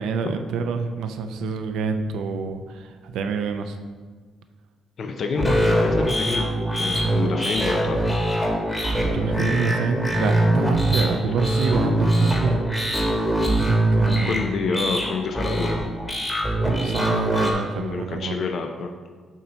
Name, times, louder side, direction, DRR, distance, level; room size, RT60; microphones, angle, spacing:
voice 1, 0.0-3.8 9.0-12.5 13.4-14.5 16.6-18.4, right 5 dB, 85° right, 7 dB, 0.5 m, -27 dB
voice 2, 5.0-6.5 6.8-8.0 9.2-9.7 14.2-15.8 17.8-19.1, left 4 dB, 55° left, 4 dB, 0.5 m, -28 dB
sound 1, 5.4-17.5, right 1 dB, 10° left, 1.3 m, -22 dB
7.2 x 2.9 x 5.4 m, 1.5 s
cardioid pair, 90°, 0 cm